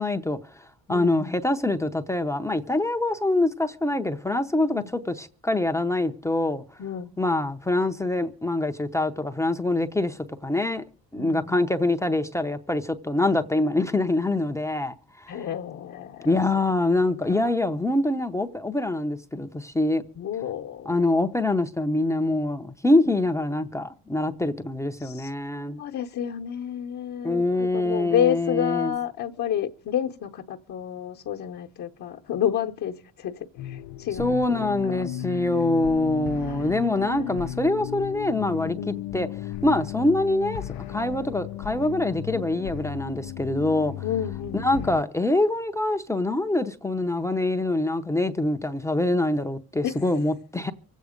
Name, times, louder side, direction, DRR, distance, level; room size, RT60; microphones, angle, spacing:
voice 1, 0.0-6.6 7.2-10.8 11.1-15.4 16.2-20.0 20.9-25.8 27.2-28.9 34.2-39.3 39.6-40.6 40.9-43.9 44.5-50.7, left 2 dB, 10° left, 0.6 m, -25 dB
voice 2, 0.9-1.4 4.7-4.9 6.8-7.1 11.2-11.7 15.3-16.4 17.3-17.5 20.2-20.9 23.1-23.2 25.0-25.3 25.8-35.4 36.5-37.5 38.8-39.0 44.0-44.9 49.8-50.0, left 9 dB, 50° left, 1.0 m, -30 dB
sound 1, 33.6-45.0, left 12 dB, 75° left, 0.7 m, -35 dB
25.0 x 8.4 x 5.0 m
cardioid pair, 145°, 36 cm